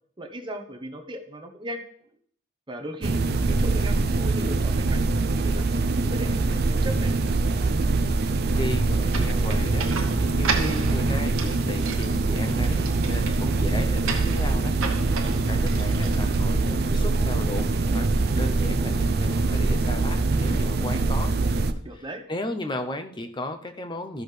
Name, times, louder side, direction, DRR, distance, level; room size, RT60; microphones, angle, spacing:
voice 1, 0.2-1.8 2.7-3.2 3.5-5.0 5.4-7.1 21.8-22.2, right 1 dB, 20° right, 4 dB, 0.9 m, -37 dB
sound 1, 3.0-21.7, right 3 dB, 45° right, 0.5 m, -23 dB
voice 2, 8.5-9.9 10.2-14.8 15.2-18.1 18.4-21.4 22.0-24.2, left 1 dB, 20° left, 7 dB, 0.7 m, -35 dB
sound 2, 9.1-16.8, right 5 dB, 70° right, 1.1 m, -35 dB
13.5 x 6.3 x 3.3 m, 0.63 s
head